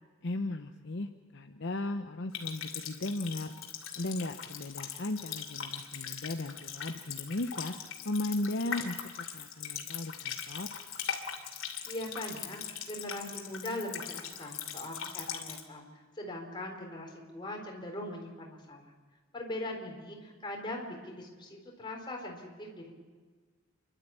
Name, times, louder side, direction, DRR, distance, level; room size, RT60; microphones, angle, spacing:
voice 1, 0.2-3.5 4.0-7.7 8.0-10.7, left 2 dB, 60° left, 6 dB, 0.9 m, -36 dB
Water tap faucet, 2.3-15.6, left 8 dB, 80° left, 2.7 m, -40 dB
voice 2, 11.9-15.9 16.2-18.9 19.3-22.9, left 1 dB, 25° left, 0 dB, 4.1 m, -41 dB
29.0 x 12.0 x 8.7 m, 1.4 s
head